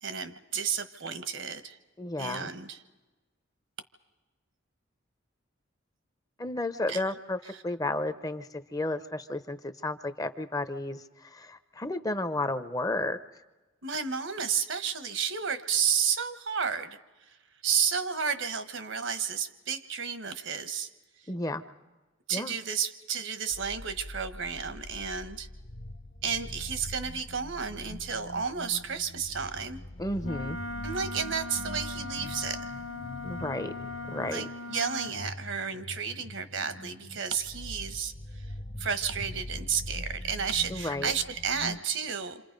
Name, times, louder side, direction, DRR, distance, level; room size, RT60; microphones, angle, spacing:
voice 1, 0.0-1.8 2.2-2.8 6.9-7.0 7.5-7.6 13.8-17.4 17.6-20.9 22.3-25.5 26.2-29.8 30.8-32.7 34.2-38.5 38.8-42.4, right 7 dB, 70° right, 10 dB, 1.3 m, -32 dB
voice 2, 2.0-2.5 6.4-13.2 21.3-21.6 22.3-22.5 30.0-30.6 33.2-33.7 34.0-34.4 40.7-41.1, left 2 dB, 15° left, 10 dB, 0.7 m, -32 dB
sound 1, 23.5-41.8, left 1 dB, 40° left, 1.0 m, -43 dB
Wind instrument woodwind instrument, 30.2-35.2, left 2 dB, 80° left, 1.5 m, -39 dB
27.5 x 27.0 x 5.3 m, 1.2 s
head